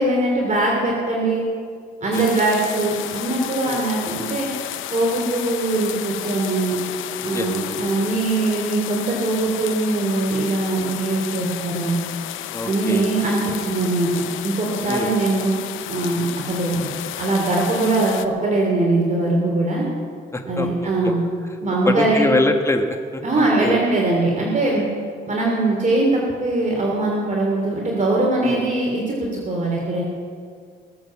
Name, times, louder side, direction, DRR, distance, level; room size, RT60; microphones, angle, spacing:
voice 1, 0.0-1.4 2.0-4.5 4.9-6.8 7.2-12.0 12.6-15.5 15.9-16.9 17.2-19.8 20.5-21.2 21.6-22.3 23.2-24.8 25.3-29.2 29.4-30.0, right 2 dB, 40° right, -2 dB, 3.1 m, -21 dB
sound 1, 2.1-18.3, left 13 dB, 85° left, 0.6 m, -32 dB
voice 2, 12.5-13.0 14.9-15.1 20.3-21.1 21.8-23.2 23.6-23.8 28.4-28.6, left 2 dB, 15° left, 5 dB, 1.4 m, -23 dB
18.5 x 7.9 x 7.3 m, 2.1 s
cardioid pair, 90°, 20 cm